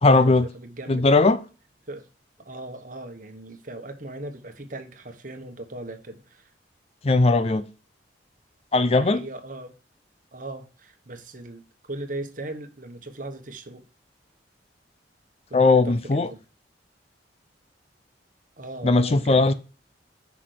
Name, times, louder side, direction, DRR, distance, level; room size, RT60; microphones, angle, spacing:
voice 1, 0.0-0.5 0.9-1.4 7.0-7.7 8.7-9.2 15.5-16.3 18.8-19.5, left 3 dB, 35° left, 0.5 m, -18 dB
voice 2, 0.6-1.1 1.9-2.1 2.4-6.5 9.0-9.8 10.3-11.6 11.9-13.8 15.5-16.4 18.6-19.5, right 2 dB, 45° right, 1.3 m, -38 dB
6.1 x 5.9 x 6.4 m
head